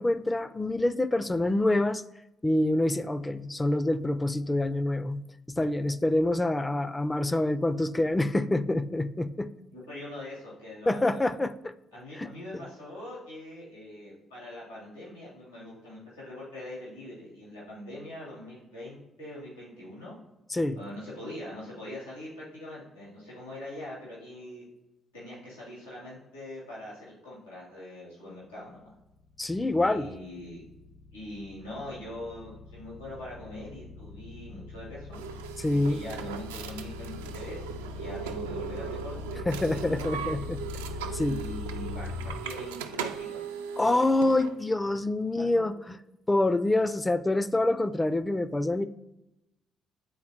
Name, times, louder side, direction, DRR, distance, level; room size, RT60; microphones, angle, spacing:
voice 1, 0.0-2.0 2.4-5.2 5.5-9.5 10.9-11.7 12.2-12.6 20.5-20.8 29.4-30.1 35.6-36.0 39.5-40.6 41.1-41.4 43.8-45.7 46.3-48.8, left 2 dB, 15° left, 13 dB, 0.3 m, -26 dB
voice 2, 9.7-11.3 11.9-20.2 20.7-24.6 25.1-28.9 29.8-30.6 31.1-35.2 35.7-40.4 41.2-43.6, left 1 dB, 90° left, -7 dB, 2.3 m, -42 dB
sound 1, 29.1-42.4, left 4 dB, 70° left, 0.8 m, -41 dB
sound 2, 35.1-44.5, right 7 dB, 75° right, 0.3 m, -38 dB
8.6 x 4.0 x 2.8 m, 0.94 s
figure-of-eight pair, 45°, 0 cm